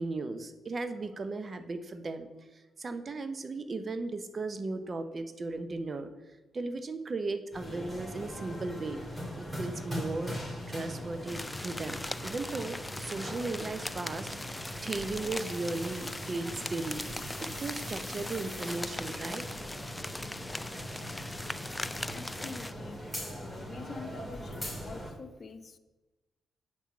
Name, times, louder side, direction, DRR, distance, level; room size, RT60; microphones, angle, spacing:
voice 1, 0.0-2.3 2.8-6.1 6.5-9.0 9.4-17.0 17.4-19.4, right 3 dB, 45° right, 10 dB, 1.0 m, -36 dB
sound 1, 7.5-25.1, equal, 5° right, 3.4 m, -41 dB
sound 2, 11.3-22.7, left 1 dB, 15° left, 0.5 m, -40 dB
voice 2, 22.1-23.0 23.4-25.8, left 4 dB, 45° left, 9 dB, 0.8 m, -45 dB
8.0 x 5.9 x 7.3 m, 1.1 s
supercardioid pair, 50°, 0 cm